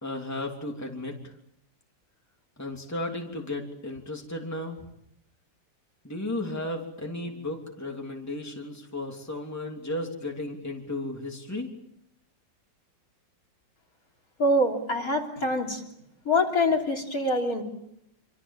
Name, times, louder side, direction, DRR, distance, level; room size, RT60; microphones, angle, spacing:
voice 1, 0.0-1.3 2.6-4.8 6.0-11.7, left 1 dB, 10° left, 1 dB, 3.2 m, -34 dB
voice 2, 14.4-15.8 16.3-17.6, left 1 dB, 45° left, 1 dB, 3.8 m, -25 dB
27.0 x 26.5 x 7.5 m, 0.76 s
omnidirectional pair, 2.1 m